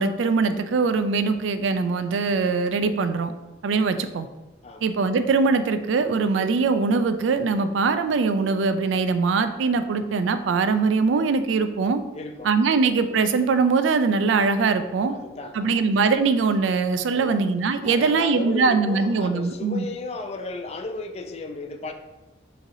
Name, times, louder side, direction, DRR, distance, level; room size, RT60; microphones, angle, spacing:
voice 1, 0.0-3.3 3.6-4.3 4.8-12.0 12.4-15.1 15.5-19.9, right 4 dB, 85° right, 10 dB, 0.4 m, -22 dB
voice 2, 12.1-12.5 15.1-15.8 17.1-17.4 17.8-21.9, left 3 dB, 35° left, 6 dB, 0.3 m, -34 dB
6.2 x 3.2 x 2.6 m, 1.0 s
head